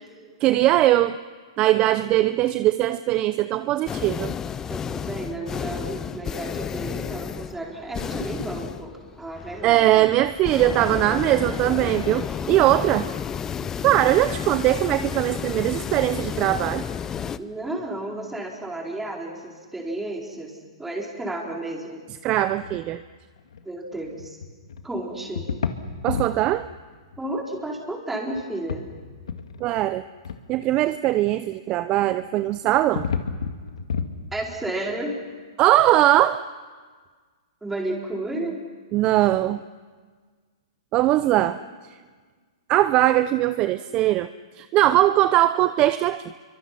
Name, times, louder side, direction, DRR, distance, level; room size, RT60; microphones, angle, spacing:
voice 1, 0.4-1.2 1.6-4.3 9.6-13.1 13.8-16.9 22.2-23.0 26.0-26.7 29.6-30.0 30.5-33.1 35.6-36.4 38.9-39.6 40.9-41.6 42.7-44.3 44.6-46.2, right 14 dB, 30° right, 12 dB, 0.6 m, -20 dB
sound 1, 3.9-17.4, left 7 dB, 15° left, 0.6 m, -32 dB
voice 2, 4.7-10.1 17.4-20.5 20.8-22.0 23.6-24.4 24.8-25.5 27.2-28.8 34.3-35.2 37.6-38.6 41.3-41.5, right 1 dB, 5° right, -1 dB, 4.4 m, -32 dB
sound 2, 22.6-22.8 23.4-23.6 24.0-24.8 25.3-26.4 27.1-27.2 28.3-28.8 29.1-29.8 30.2-30.4 32.2-34.1, left 6 dB, 80° left, 1.8 m, -30 dB
28.5 x 24.5 x 5.9 m, 1.5 s
hypercardioid pair, 135°, 3 cm